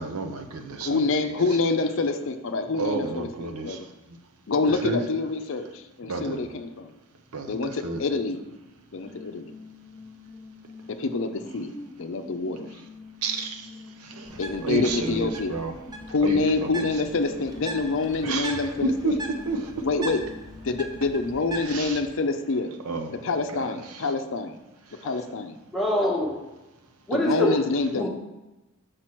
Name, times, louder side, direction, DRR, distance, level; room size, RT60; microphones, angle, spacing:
voice 1, 0.0-1.4 2.8-4.2 4.7-5.0 6.1-6.4 7.3-8.0 13.2-15.7 16.2-16.9 18.2-19.9 21.6-22.0 22.8-23.1 23.5-24.1 24.9-25.1, right 3 dB, 80° right, 5 dB, 0.7 m, -31 dB
voice 2, 0.8-3.9 4.5-6.9 7.5-8.4 8.9-9.5 11.0-11.7 12.0-12.7 14.4-15.6 16.1-19.2 19.8-20.2 20.6-22.7 23.1-24.6 25.0-25.6 27.1-28.1, left 3 dB, 60° left, 8 dB, 0.5 m, -26 dB
sound 1, 9.0-21.1, left 2 dB, 20° left, 1.4 m, -45 dB
Bird, 14.2-22.0, right 2 dB, 15° right, 0.5 m, -40 dB
voice 3, 25.7-26.4 27.1-27.6 27.9-28.1, left 1 dB, ahead, -5 dB, 1.1 m, -24 dB
6.0 x 4.8 x 4.5 m, 1.0 s
head